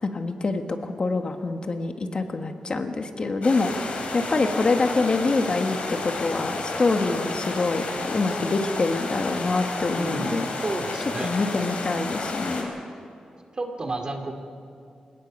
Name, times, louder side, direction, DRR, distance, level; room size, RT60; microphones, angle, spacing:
voice 1, 0.0-3.7 4.1-10.4 11.2-12.7, left 3 dB, 40° left, 6 dB, 1.3 m, -25 dB
sound 1, 3.4-12.6, left 3 dB, 70° left, 3.7 m, -31 dB
voice 2, 10.0-11.3 13.5-14.3, right 2 dB, 35° right, 4 dB, 2.3 m, -31 dB
28.0 x 17.5 x 5.3 m, 2.5 s
wide cardioid pair, 125°, 2 cm